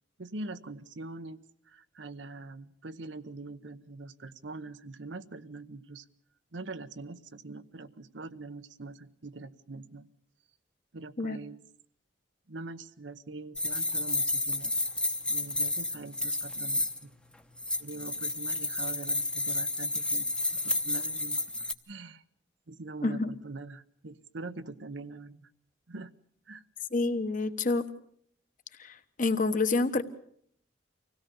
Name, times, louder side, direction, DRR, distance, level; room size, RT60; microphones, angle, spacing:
voice 1, 0.2-6.0 6.5-10.1 10.9-11.6 12.5-14.7 15.3-17.1 17.8-21.4 21.9-22.2 22.7-25.5 25.9-26.1 26.5-26.7, right 3 dB, 80° right, 11 dB, 0.9 m, -43 dB
sound 1, 13.6-17.0 17.6-21.7, left 2 dB, 5° left, 0.9 m, -31 dB
voice 2, 26.9-27.9 28.8-30.0, left 3 dB, 45° left, 10 dB, 1.2 m, -28 dB
25.0 x 17.0 x 7.0 m, 0.65 s
head